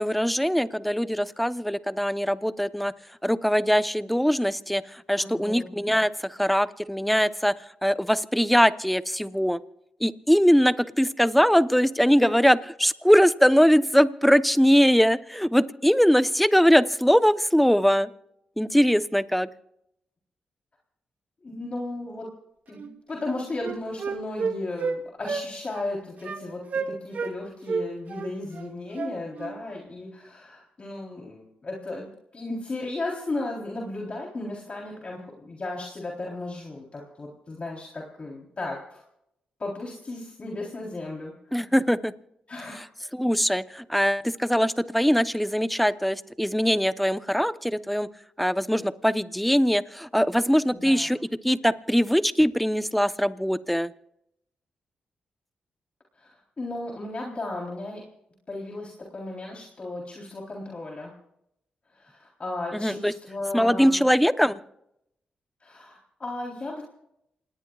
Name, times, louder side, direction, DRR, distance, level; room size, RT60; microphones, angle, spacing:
voice 1, 0.0-2.9 3.2-7.5 7.8-9.6 10.0-18.1 18.6-19.5 41.5-42.1 42.8-42.9 43.1-48.1 48.4-51.2 51.4-53.9 62.7-63.1 63.5-64.6, equal, ahead, 12 dB, 0.9 m, -22 dB
voice 2, 5.2-5.7 12.2-12.3 21.4-22.3 22.7-39.0 39.6-41.3 42.5-42.8 50.7-51.1 56.2-58.0 58.5-61.1 61.9-64.0 65.6-66.8, left 2 dB, 45° left, -2 dB, 3.8 m, -35 dB
Wind instrument woodwind instrument, 22.8-22.9 23.2-25.0 25.3-25.5 25.7-25.9 26.2-26.4 26.7-27.3 27.7-29.6, right 5 dB, 65° right, 2.0 m, -31 dB
28.0 x 19.0 x 2.5 m, 0.78 s
supercardioid pair, 55°, 3 cm